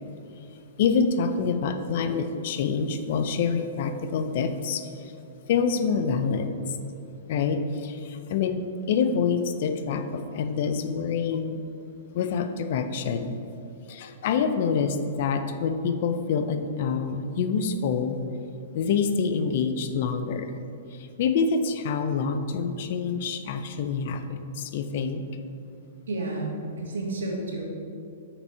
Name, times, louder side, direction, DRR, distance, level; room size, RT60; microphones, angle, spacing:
voice 1, 0.8-5.1 5.5-6.8 7.3-11.6 12.1-13.3 13.9-18.2 18.7-20.6 20.9-25.2, left 5 dB, 55° left, 8 dB, 0.5 m, -26 dB
voice 2, 26.1-27.6, right 2 dB, 80° right, 0 dB, 1.3 m, -31 dB
5.8 x 4.1 x 4.7 m, 2.6 s
hypercardioid pair, 125°, 0 cm